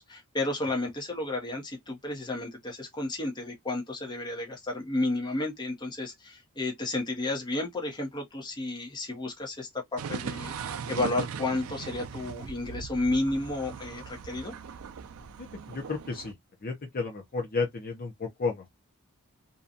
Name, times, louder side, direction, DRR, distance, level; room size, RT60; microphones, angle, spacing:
voice 1, 0.0-14.5, left 2 dB, 20° left, 0.9 m, -32 dB
sound 1, 10.0-16.3, right 6 dB, 75° right, 0.4 m, -39 dB
voice 2, 15.4-16.3 16.6-18.7, left 4 dB, 45° left, 0.7 m, -32 dB
2.7 x 2.3 x 2.4 m
head